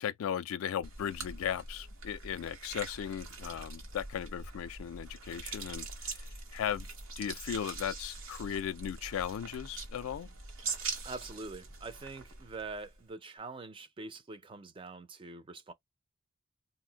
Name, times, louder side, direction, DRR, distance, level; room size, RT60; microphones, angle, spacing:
voice 1, 0.0-6.9 7.2-10.3, left 9 dB, 80° left, 0.3 m, -37 dB
sound 1, 0.8-13.0, right 4 dB, 75° right, 0.9 m, -43 dB
voice 2, 11.0-15.7, right 3 dB, 25° right, 0.3 m, -44 dB
2.4 x 2.0 x 3.8 m
head